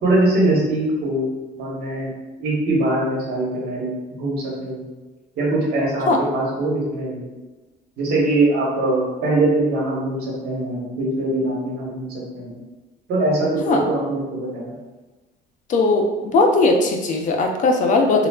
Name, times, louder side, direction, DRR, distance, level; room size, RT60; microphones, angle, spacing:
voice 1, 0.0-1.3 1.6-2.1 2.4-3.9 4.2-4.8 5.4-7.3 8.0-12.6 13.1-14.7, right 2 dB, 70° right, -3 dB, 1.0 m, -22 dB
voice 2, 15.7-18.3, left 3 dB, 50° left, 3 dB, 0.4 m, -18 dB
3.3 x 2.2 x 2.2 m, 1.2 s
cardioid pair, 110°, 17 cm